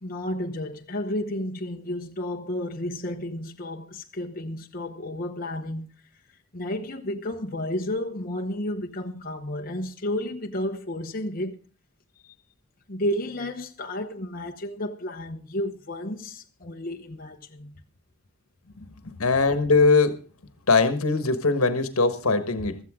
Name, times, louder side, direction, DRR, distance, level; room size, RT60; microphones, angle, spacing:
voice 1, 0.0-5.9 6.5-11.6 12.2-12.3 12.9-17.8, left 1 dB, 45° left, 1.0 m, -32 dB
voice 2, 18.8-20.2 20.7-22.8, left 3 dB, 85° left, 1.5 m, -21 dB
15.5 x 14.0 x 3.7 m
head